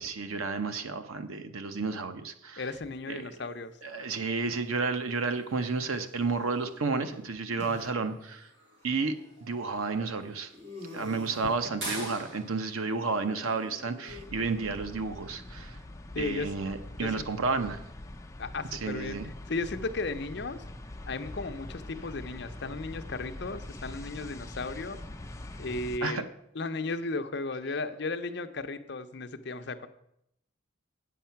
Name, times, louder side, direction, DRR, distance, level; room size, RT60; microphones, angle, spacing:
voice 1, 0.0-2.6 3.1-3.5 3.8-8.5 8.8-9.2 9.4-10.5 10.9-15.8 16.2-17.8 18.7-19.3 26.0-26.2, right 4 dB, 90° right, 9 dB, 0.8 m, -31 dB
voice 2, 2.6-3.7 16.1-16.5 16.9-17.3 18.4-20.6 21.1-25.0 25.6-26.3 26.5-29.9, left 3 dB, 55° left, 8 dB, 0.6 m, -35 dB
sound 1, 3.4-15.3, right 1 dB, 55° right, 2.6 m, -48 dB
sound 2, 6.7-7.8 8.8-8.9 10.5-11.7 12.9-14.3, left 2 dB, 30° right, 2.0 m, -46 dB
sound 3, 14.1-26.0, left 1 dB, 15° left, 0.5 m, -44 dB
8.4 x 7.6 x 5.7 m, 0.77 s
head